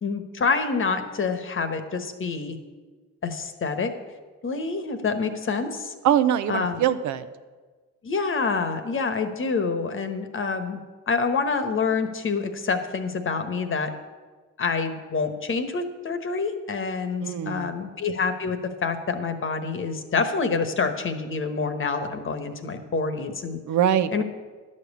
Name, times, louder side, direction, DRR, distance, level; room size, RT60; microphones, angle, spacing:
voice 1, 0.0-2.6 3.2-3.9 4.4-5.9 6.5-6.8 8.0-10.8 11.1-13.9 14.6-23.6 24.1-24.2, left 4 dB, 40° left, 8 dB, 1.2 m, -27 dB
voice 2, 6.0-7.3 17.2-17.7 23.7-24.2, right 10 dB, 75° right, 12 dB, 0.7 m, -23 dB
11.5 x 5.4 x 8.3 m, 1.4 s
cardioid pair, 90°, 30 cm